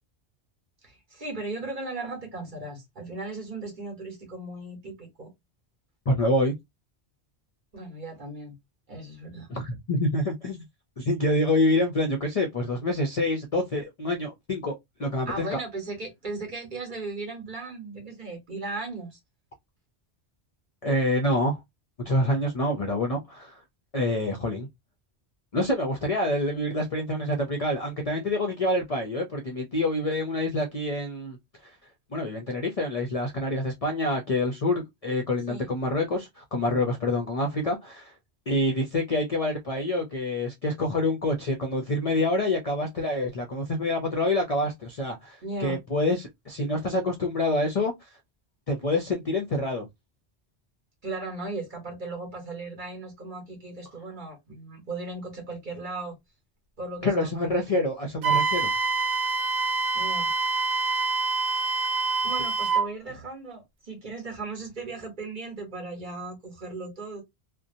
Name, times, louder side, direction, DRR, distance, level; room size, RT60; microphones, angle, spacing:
voice 1, 0.8-5.3 7.7-8.6 8.9-9.5 15.3-19.2 35.5-35.7 45.4-45.8 51.0-56.2 56.8-57.6 59.9-60.3 62.2-67.2, right 3 dB, 50° right, 1.1 m, -37 dB
voice 2, 6.1-6.5 9.5-10.6 11.0-15.6 20.8-21.6 22.1-23.6 23.9-24.7 25.5-31.4 31.6-31.7 32.1-38.1 38.5-47.9 48.7-49.9 57.0-58.7, left 1 dB, 50° left, 0.4 m, -27 dB
Wind instrument woodwind instrument, 58.2-62.9, right 4 dB, 75° right, 0.9 m, -26 dB
2.7 x 2.1 x 2.5 m
omnidirectional pair, 1.1 m